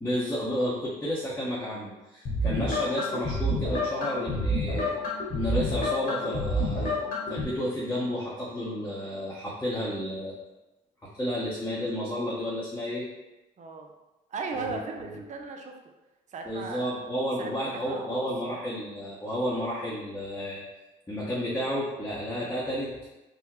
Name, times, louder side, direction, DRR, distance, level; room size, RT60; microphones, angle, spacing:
voice 1, 0.0-4.9 5.3-6.9 7.3-10.3 11.0-13.0 14.5-14.8 15.1-15.2 16.5-20.6 21.1-22.9, equal, 10° left, -7 dB, 0.8 m, -31 dB
sound 1, 2.2-7.4, left 1 dB, 55° left, 1.2 m, -29 dB
voice 2, 13.6-13.9 14.3-15.7 16.3-16.8 17.4-18.5, right 4 dB, 45° right, 3 dB, 0.6 m, -37 dB
3.6 x 2.1 x 3.0 m, 1.0 s
supercardioid pair, 75°, 17 cm